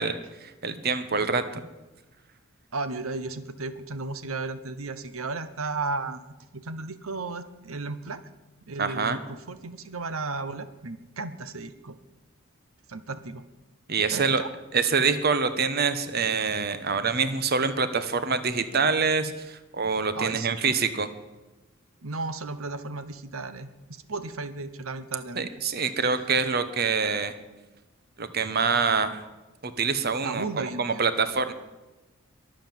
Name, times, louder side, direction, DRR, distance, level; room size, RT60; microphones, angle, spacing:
voice 1, 0.0-1.6 8.8-9.2 13.9-14.4 14.7-21.1 25.3-27.3 28.2-29.2 29.6-31.5, right 5 dB, 50° right, 11 dB, 1.1 m, -26 dB
voice 2, 2.7-6.2 6.5-8.2 8.7-11.9 12.9-13.4 14.1-14.5 20.1-20.5 22.0-25.5 30.2-31.0, right 3 dB, 85° right, 12 dB, 0.9 m, -34 dB
22.5 x 7.6 x 7.6 m, 1.1 s
head